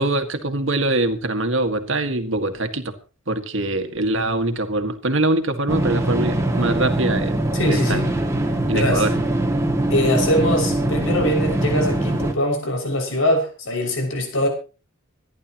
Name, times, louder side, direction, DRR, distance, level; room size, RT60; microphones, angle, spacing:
voice 1, 0.0-2.9 3.3-7.4 7.7-8.0 8.7-9.1, right 2 dB, 65° right, 7 dB, 2.0 m, -23 dB
sound 1, 5.7-12.3, right 1 dB, 15° right, 2.3 m, -22 dB
voice 2, 7.5-8.1 8.7-9.1 9.9-14.5, left 1 dB, 75° left, 2 dB, 6.3 m, -22 dB
26.5 x 11.5 x 3.1 m, 0.35 s
head